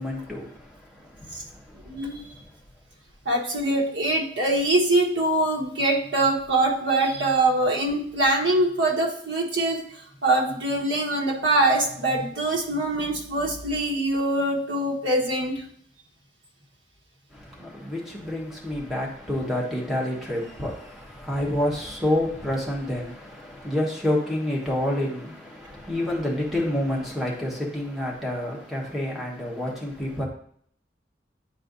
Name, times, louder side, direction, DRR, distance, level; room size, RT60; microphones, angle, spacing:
voice 1, 0.0-2.5 17.3-30.3, left 1 dB, ahead, 1.3 m, -29 dB
voice 2, 1.9-2.3 3.2-9.8 10.2-15.6, right 2 dB, 90° right, 1.4 m, -23 dB
8.9 x 4.4 x 2.6 m
head